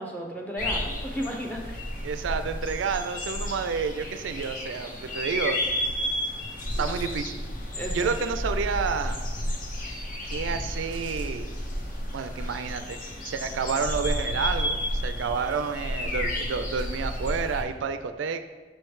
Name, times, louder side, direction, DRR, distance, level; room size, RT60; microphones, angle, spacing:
voice 1, 0.0-1.8 6.8-7.0 7.7-8.1, equal, 10° left, -1 dB, 0.7 m, -34 dB
sound 1, 0.6-17.6, left 1 dB, 45° left, 0.7 m, -32 dB
voice 2, 2.0-5.6 6.8-7.4 7.9-9.2 10.2-11.5 12.1-13.0 13.2-18.4, right 5 dB, 80° right, 9 dB, 0.4 m, -30 dB
6.3 x 3.2 x 4.6 m, 1.4 s
head